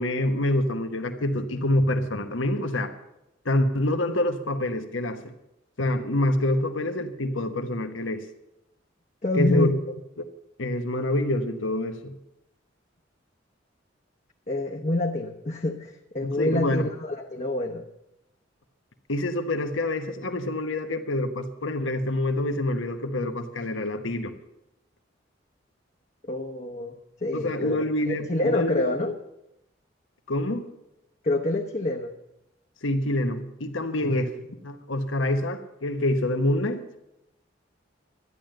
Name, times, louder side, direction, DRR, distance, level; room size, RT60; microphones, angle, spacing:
voice 1, 0.0-2.9 3.4-5.3 5.8-8.3 9.3-9.7 10.6-12.1 16.2-16.8 19.1-24.3 27.3-28.8 30.3-30.6 32.8-34.3 34.6-36.8, left 1 dB, 80° left, 7 dB, 1.2 m, -26 dB
voice 2, 9.2-9.8 14.5-17.9 26.2-29.1 31.2-32.1 34.1-34.3, left 2 dB, 35° left, 0 dB, 0.9 m, -27 dB
12.5 x 10.5 x 7.7 m, 0.88 s
head